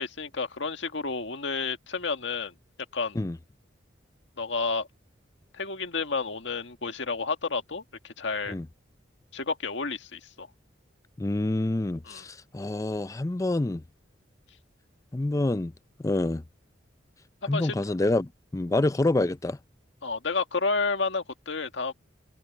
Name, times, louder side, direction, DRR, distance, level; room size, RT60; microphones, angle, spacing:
voice 1, 0.0-2.5 2.9-3.2 4.4-4.9 5.5-8.6 9.3-10.5 12.1-12.2 17.4-17.7 20.0-21.9, left 4 dB, 75° left, 1.8 m, -30 dB
voice 2, 11.2-13.8 15.1-15.7 16.0-16.4 17.5-19.6, left 2 dB, 15° left, 0.4 m, -27 dB
head